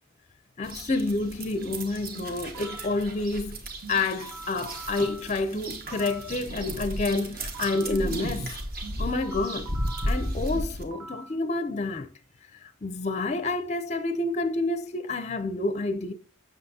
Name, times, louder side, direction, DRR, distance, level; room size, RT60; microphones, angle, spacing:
voice 1, 0.6-3.6 3.9-8.5 9.0-9.7 10.0-12.1 12.6-16.1, left 2 dB, 30° left, 0.5 m, -29 dB
sound 1, 0.6-10.8, right 1 dB, 45° right, 1.0 m, -34 dB
sound 2, 2.1-3.0 3.8-6.4 7.1-8.0 8.8-11.4, right 2 dB, 90° right, 1.8 m, -44 dB
7.7 x 6.5 x 2.7 m
head